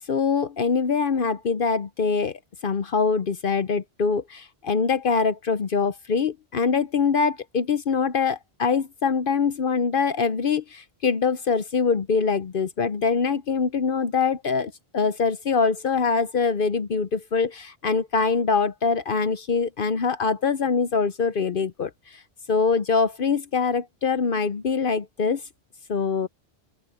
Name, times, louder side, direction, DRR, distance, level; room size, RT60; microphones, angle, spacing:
voice 1, 0.1-22.2 22.5-25.4 25.9-26.3, left 5 dB, 55° left, 0.9 m, -24 dB
open air
omnidirectional pair, 1.1 m